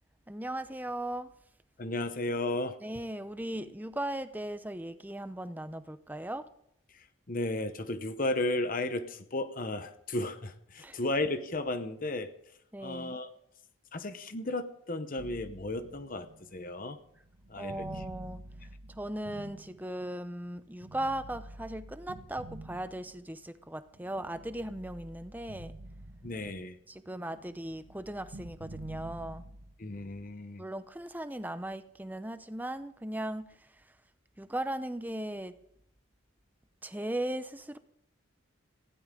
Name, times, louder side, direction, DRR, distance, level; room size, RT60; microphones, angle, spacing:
voice 1, 0.3-1.3 2.8-6.5 10.8-11.0 12.7-13.2 17.6-18.4 18.9-25.7 26.9-29.4 30.6-34.0 34.4-35.5 36.8-37.8, right 1 dB, 10° right, 11 dB, 0.6 m, -38 dB
voice 2, 1.8-2.8 7.3-12.3 12.8-13.3 13.9-17.0 17.5-17.8 26.2-26.7 29.8-30.6, left 2 dB, 40° left, 10 dB, 0.9 m, -34 dB
sound 1, 15.2-20.3 20.8-23.5 23.9-26.8 27.1-29.7, right 1 dB, 80° right, 1.6 m, -48 dB
19.5 x 16.0 x 3.8 m, 0.74 s
head